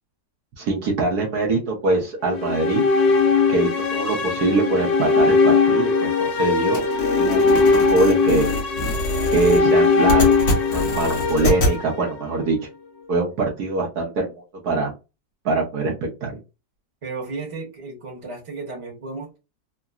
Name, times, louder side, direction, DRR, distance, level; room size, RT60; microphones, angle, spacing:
voice 1, 0.6-2.8 3.5-6.8 7.2-8.5 9.3-10.4 10.7-12.6 13.1-14.3 14.6-14.9 15.4-15.9 16.2-16.3, right 3 dB, 65° right, 1.3 m, -23 dB
sound 1, 2.3-12.5, left 4 dB, 80° left, 1.4 m, -20 dB
sound 2, 6.7-11.8, left 1 dB, 55° left, 1.3 m, -25 dB
voice 2, 17.0-19.4, right 3 dB, 20° right, 1.1 m, -34 dB
3.7 x 2.2 x 2.4 m
omnidirectional pair, 1.9 m